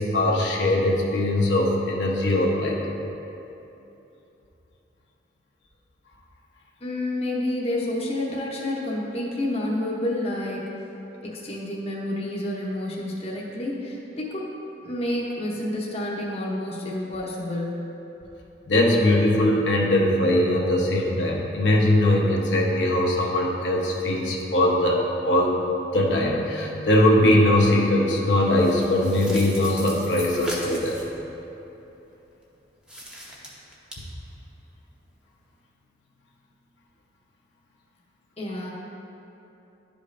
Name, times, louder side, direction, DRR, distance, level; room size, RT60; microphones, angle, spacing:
voice 1, 0.0-2.8 18.7-25.5 25.9-31.0, left 1 dB, 85° left, -3 dB, 1.0 m, -21 dB
voice 2, 6.8-10.7 11.2-14.5 14.8-17.8 38.4-38.7, left 1 dB, 35° left, -4 dB, 0.8 m, -29 dB
sound 1, 28.5-31.1 32.8-33.9, equal, 5° right, 0.8 m, -38 dB
11.0 x 5.1 x 2.5 m, 3.0 s
head